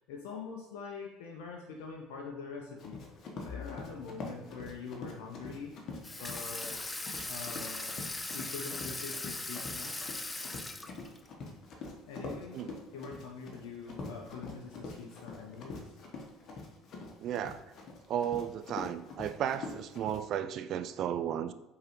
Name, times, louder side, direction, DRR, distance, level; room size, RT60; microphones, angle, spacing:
voice 1, 0.1-3.0 3.4-5.7 6.1-6.8 7.2-8.0 8.3-9.9 12.1-12.6 12.9-15.8, left 5 dB, 75° left, 0 dB, 0.5 m, -44 dB
Run, 2.8-20.2, left 3 dB, 50° left, 0.9 m, -45 dB
Water tap faucet / Sink (filling or washing), 6.0-11.3, left 2 dB, 15° left, 0.5 m, -39 dB
voice 2, 17.2-17.6 18.1-21.5, right 9 dB, 55° right, 11 dB, 0.3 m, -34 dB
4.7 x 3.6 x 2.9 m, 0.99 s
hypercardioid pair, 65°, 0 cm